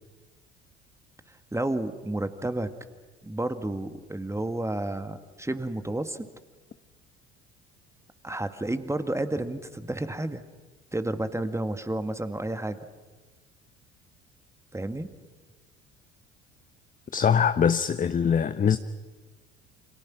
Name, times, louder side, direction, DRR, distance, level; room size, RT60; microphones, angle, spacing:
voice 1, 1.3-2.7 3.2-6.3 8.2-10.4 10.9-12.8 14.7-15.1, right 1 dB, 10° right, 1.8 m, -31 dB
voice 2, 17.1-18.8, left 7 dB, 25° left, 0.9 m, -22 dB
29.5 x 26.5 x 6.1 m
figure-of-eight pair, 55°, 33 cm